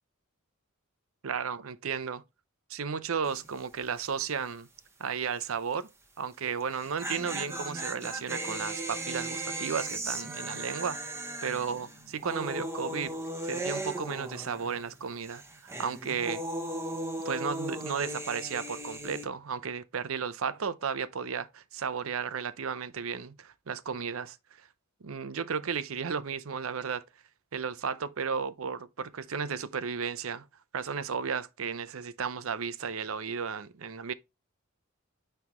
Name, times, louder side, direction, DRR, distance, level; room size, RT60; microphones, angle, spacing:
voice 1, 1.2-2.2 2.7-4.7 5.0-5.9 6.2-11.0 11.4-13.1 13.4-16.4 17.2-24.7 25.0-27.0 27.5-30.5 30.7-34.1, right 6 dB, 65° right, 0.6 m, -34 dB
sound 1, 3.2-3.6 3.8-3.9 6.6-15.0 15.2-19.2, right 1 dB, 10° right, 0.9 m, -37 dB
9.5 x 3.3 x 3.0 m
head